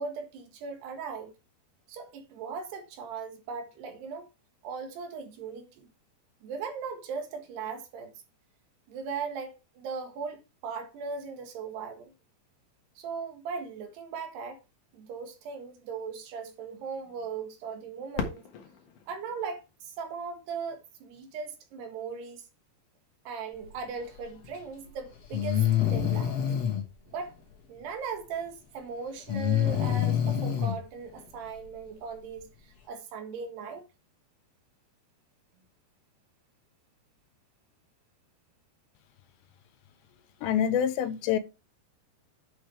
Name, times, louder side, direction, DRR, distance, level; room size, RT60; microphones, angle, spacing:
voice 1, 0.0-1.3 1.9-4.3 4.6-5.9 6.4-8.1 8.9-12.1 13.0-14.6 14.9-18.4 19.1-22.4 23.3-26.5 27.1-27.3 27.7-33.8, right 5 dB, 75° right, 3.7 m, -38 dB
Fireworks, 18.1-20.9 21.6-21.7 22.4-22.8 24.7-24.8, left 6 dB, 60° left, 2.6 m, -40 dB
Breathing, 24.4-24.5 25.3-26.8 29.3-30.7, left 10 dB, 45° left, 2.4 m, -26 dB
voice 2, 40.4-41.4, left 9 dB, 80° left, 3.1 m, -26 dB
10.5 x 6.5 x 3.4 m
omnidirectional pair, 5.0 m